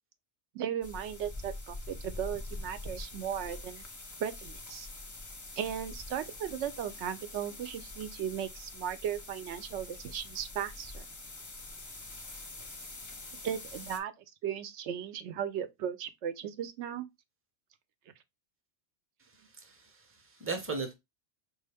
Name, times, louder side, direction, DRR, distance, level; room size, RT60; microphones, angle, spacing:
voice 1, 0.5-3.8 4.2-4.9 5.6-11.0 13.4-14.1 14.4-17.1, right 9 dB, 80° right, 0.9 m, -36 dB
sound 1, 0.8-14.0, left 2 dB, 20° left, 0.5 m, -45 dB
voice 2, 19.5-20.9, right 4 dB, 15° right, 0.7 m, -37 dB
4.7 x 2.5 x 3.3 m
omnidirectional pair, 1.2 m